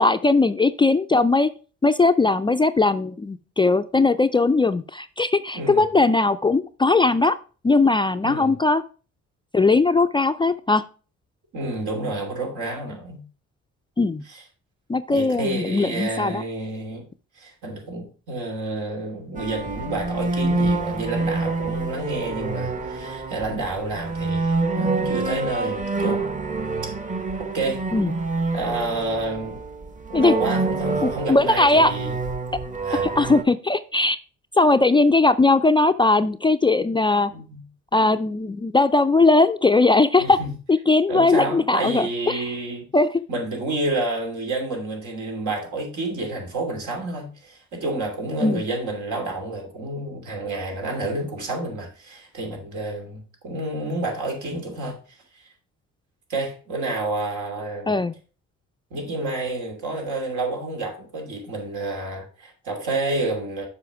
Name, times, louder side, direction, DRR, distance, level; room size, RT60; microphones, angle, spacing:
voice 1, 0.0-1.5 1.8-7.4 7.6-8.8 9.5-10.8 14.0-14.2 14.9-16.4 27.9-28.1 30.1-30.3 31.0-31.9 32.9-34.2 34.6-37.3 37.9-40.4 40.7-42.5 42.9-43.2 48.4-48.6 57.9-58.1, left 3 dB, 15° left, 0.3 m, -19 dB
voice 2, 11.5-13.2 14.3-14.4 15.1-17.1 17.4-26.3 27.4-27.8 28.5-29.6 30.1-32.1 32.8-33.0 37.3-37.6 40.2-40.5 41.1-42.9 43.3-55.0 56.3-57.9 58.9-63.7, right 2 dB, 80° right, 2.8 m, -29 dB
sound 1, 19.4-33.4, right 3 dB, 25° right, 0.9 m, -27 dB
7.0 x 4.9 x 4.6 m
cardioid pair, 90°, 30 cm